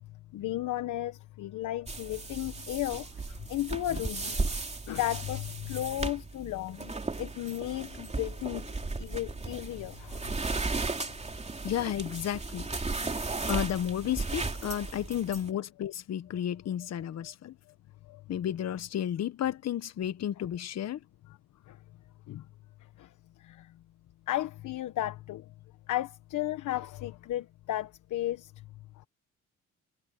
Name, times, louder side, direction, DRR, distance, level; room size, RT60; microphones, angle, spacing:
voice 1, 0.3-4.4 4.9-8.7 9.0-10.3 14.6-14.7 17.2-17.3 18.1-18.2 21.7-21.8 22.3-22.4 23.0-23.1 23.4-23.7 24.3-25.4 25.9-28.5, left 14 dB, 80° left, 1.2 m, -34 dB
sound 1, 1.9-15.5, right 3 dB, 20° right, 3.0 m, -35 dB
voice 2, 11.6-12.7 13.5-17.5 18.3-21.0, left 10 dB, 60° left, 1.1 m, -32 dB
cardioid pair, 90°, 30 cm